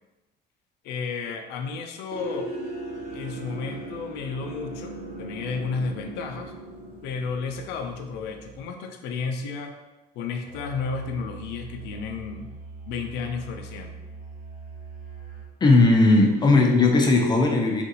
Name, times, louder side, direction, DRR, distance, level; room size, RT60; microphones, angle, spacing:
voice 1, 0.8-2.5 3.1-6.5 7.0-9.8 10.1-12.5 12.9-14.0, left 5 dB, 85° left, 5 dB, 0.4 m, -32 dB
sound 1, 2.1-8.7, right 2 dB, 85° right, 0.7 m, -38 dB
Musical instrument, 10.4-15.6, right 4 dB, 55° right, 1.3 m, -42 dB
voice 2, 15.6-17.8, left 2 dB, 25° left, 2 dB, 0.5 m, -17 dB
3.6 x 2.5 x 2.8 m, 1.1 s
cardioid pair, 110°, 17 cm